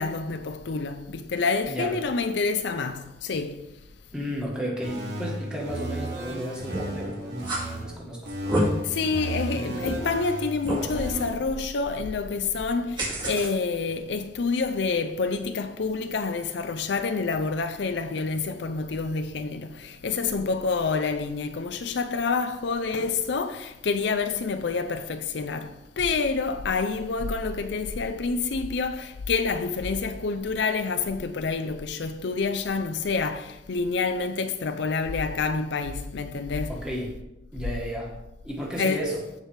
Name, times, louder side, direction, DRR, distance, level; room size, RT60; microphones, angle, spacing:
voice 1, 0.0-3.7 8.8-36.8 38.8-39.0, left 4 dB, 65° left, 0.5 m, -28 dB
voice 2, 4.1-8.3 36.7-37.2 37.5-38.1 38.4-39.2, equal, 5° right, 1.7 m, -33 dB
sound 1, 4.8-7.8 8.2-11.3, right 1 dB, 65° right, 2.3 m, -34 dB
sound 2, 6.7-7.0 7.4-7.6 8.3-8.6 9.2-9.3 9.8-10.0 10.6-10.8 13.0-13.5, right 1 dB, 25° right, 2.0 m, -28 dB
13.5 x 4.8 x 3.4 m
head